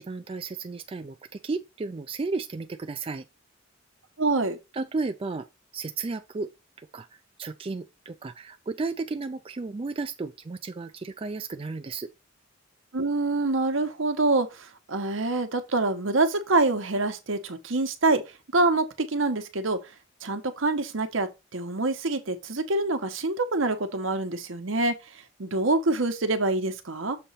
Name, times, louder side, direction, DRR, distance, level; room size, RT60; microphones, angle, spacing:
voice 1, 0.0-3.3 4.7-5.5 5.7-6.5 6.8-7.1 7.4-12.1, right 3 dB, 30° right, 0.4 m, -33 dB
voice 2, 4.2-4.6 12.9-18.2 18.5-19.8 20.2-24.9 25.4-27.2, right 2 dB, 75° right, 1.1 m, -26 dB
6.9 x 3.0 x 5.6 m
head